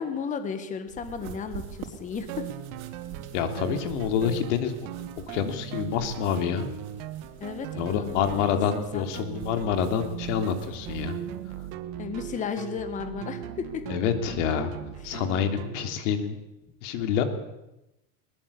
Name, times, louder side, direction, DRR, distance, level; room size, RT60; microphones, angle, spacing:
voice 1, 0.0-2.4 7.4-9.2 12.0-13.4 13.7-13.8, left 6 dB, 20° left, 9 dB, 1.8 m, -34 dB
sound 1, 0.9-11.7, right 9 dB, 85° right, 4.4 m, -46 dB
sound 2, 2.3-16.0, right 12 dB, 45° right, 1.6 m, -38 dB
voice 2, 3.3-4.8 5.3-6.7 7.7-11.2 13.9-14.7 15.0-16.4 16.8-17.2, left 8 dB, 60° left, 7 dB, 3.3 m, -27 dB
21.5 x 19.5 x 8.7 m, 0.93 s
supercardioid pair, 170°, 41 cm